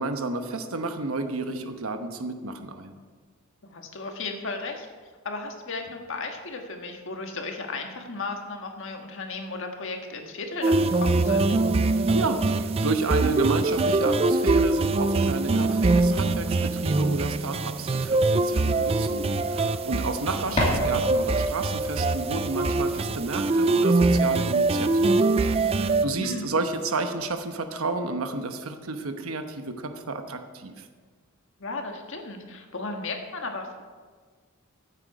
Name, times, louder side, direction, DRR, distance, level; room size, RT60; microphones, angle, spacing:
voice 1, 0.0-2.9 11.9-30.9, right 3 dB, 80° right, 7 dB, 1.0 m, -31 dB
voice 2, 3.6-4.9 5.2-11.5 20.4-20.6 25.9-26.5 31.6-33.8, left 3 dB, 65° left, 3 dB, 1.6 m, -35 dB
sound 1, 10.6-26.1, right 3 dB, 30° right, 0.4 m, -23 dB
sound 2, 17.7-23.2, left 1 dB, 30° left, 3.0 m, -34 dB
14.0 x 8.2 x 4.8 m, 1.5 s
head